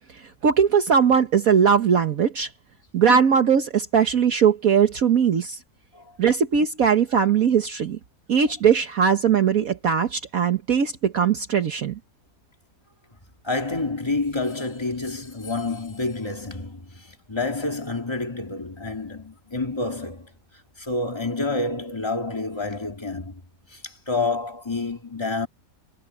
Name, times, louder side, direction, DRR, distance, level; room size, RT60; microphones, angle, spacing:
voice 1, 0.4-2.5 2.9-5.6 6.2-8.0 8.3-12.0, right 7 dB, 60° right, 1.6 m, -20 dB
voice 2, 13.4-20.3 20.8-23.4 23.7-25.5, left 3 dB, 15° left, 2.5 m, -28 dB
omnidirectional pair, 1.7 m